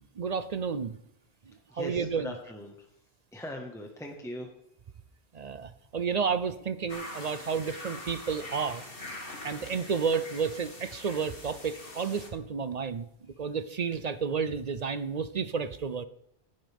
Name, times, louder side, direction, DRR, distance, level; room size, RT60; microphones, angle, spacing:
voice 1, 0.2-1.0 1.7-2.3 5.3-8.8 9.4-16.0, right 6 dB, 50° right, 13 dB, 0.6 m, -31 dB
voice 2, 1.7-2.7 3.3-4.5, equal, 5° left, 1 dB, 1.3 m, -40 dB
sound 1, 6.9-12.3, left 2 dB, 60° left, 2.5 m, -43 dB
16.5 x 11.0 x 3.5 m, 0.75 s
omnidirectional pair, 1.1 m